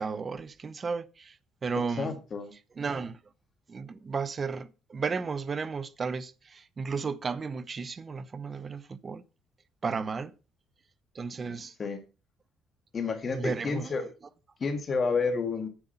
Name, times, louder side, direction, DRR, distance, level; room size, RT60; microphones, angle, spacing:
voice 1, 0.0-2.1 2.8-3.2 3.7-9.2 9.8-10.4 11.1-11.7 13.3-14.1, right 5 dB, 30° right, 0.7 m, -34 dB
voice 2, 2.0-2.5 11.8-12.0 12.9-14.0 14.6-15.7, left 4 dB, 35° left, 2.2 m, -30 dB
9.0 x 8.2 x 5.7 m
cardioid pair, 140°, 0 cm